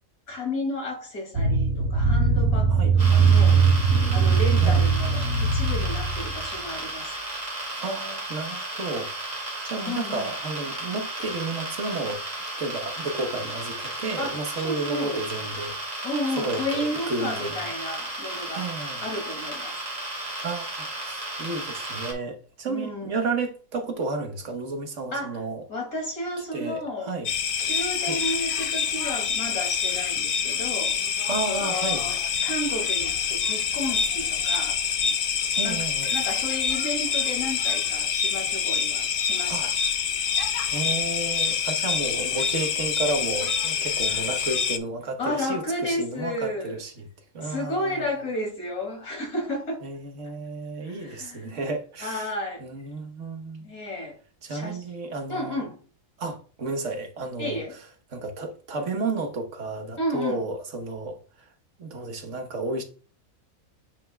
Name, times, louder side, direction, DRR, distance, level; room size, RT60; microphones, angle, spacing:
voice 1, 0.3-3.7 4.1-7.1 9.9-10.3 14.2-15.3 16.0-18.7 19.0-19.8 22.6-23.2 25.1-25.4 25.7-27.1 27.6-31.0 31.5-34.8 35.6-35.9 36.1-39.8 44.1-44.3 45.2-46.8 47.4-49.8 50.8-51.5 52.0-52.7 53.6-54.2 54.5-54.9 55.3-55.8 57.4-57.8 60.0-60.4, left 1 dB, 90° left, 3.0 m, -32 dB
sound 1, 1.3-6.5, right 5 dB, 85° right, 1.6 m, -20 dB
sound 2, 3.0-22.1, right 1 dB, 35° right, 2.8 m, -34 dB
voice 2, 7.8-9.1 9.6-12.2 12.6-16.1 16.4-17.6 18.5-19.1 20.4-25.6 26.5-27.3 28.0-28.2 31.3-32.1 35.5-36.2 39.5-39.7 40.7-47.0 47.3-48.2 49.8-52.3 52.6-53.7 54.4-55.6 56.2-57.6 58.1-61.2 61.8-62.8, right 3 dB, 60° right, 1.4 m, -32 dB
sound 3, 27.3-44.8, left 6 dB, 55° left, 0.6 m, -26 dB
9.1 x 5.6 x 2.2 m
omnidirectional pair, 1.5 m